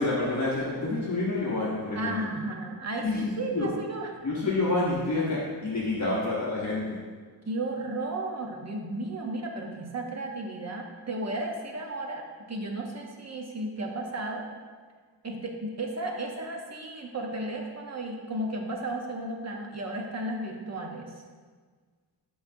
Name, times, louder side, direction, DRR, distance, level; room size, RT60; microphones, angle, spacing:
voice 1, 0.0-2.3 3.0-3.7 4.2-7.0, left 2 dB, 40° left, -7 dB, 1.0 m, -28 dB
voice 2, 1.9-4.1 6.0-6.2 7.5-14.4 15.2-21.1, right 2 dB, 35° right, 1 dB, 0.9 m, -34 dB
8.3 x 6.0 x 2.7 m, 1.5 s
wide cardioid pair, 160°, 46 cm